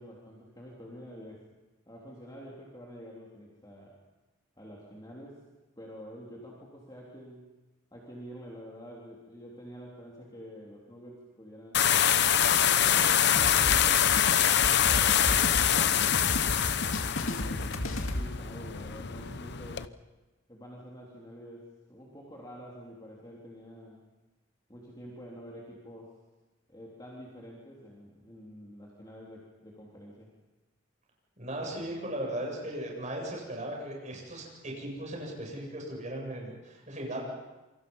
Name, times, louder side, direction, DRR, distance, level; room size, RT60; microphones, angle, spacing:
voice 1, 0.0-1.4 1.9-3.9 4.6-5.4 5.8-7.5 7.9-11.9 12.4-14.1 14.9-16.6 17.2-19.9 20.5-24.0 24.7-26.1 26.7-30.3, equal, 20° left, -4 dB, 3.5 m, -47 dB
sound 1, 11.7-19.9, left 9 dB, 55° left, 0.8 m, -25 dB
sound 2, 13.4-18.3, left 1 dB, 85° left, 2.2 m, -34 dB
voice 2, 31.4-37.2, right 1 dB, 35° right, -1 dB, 8.0 m, -37 dB
27.5 x 25.0 x 5.6 m, 1.1 s
head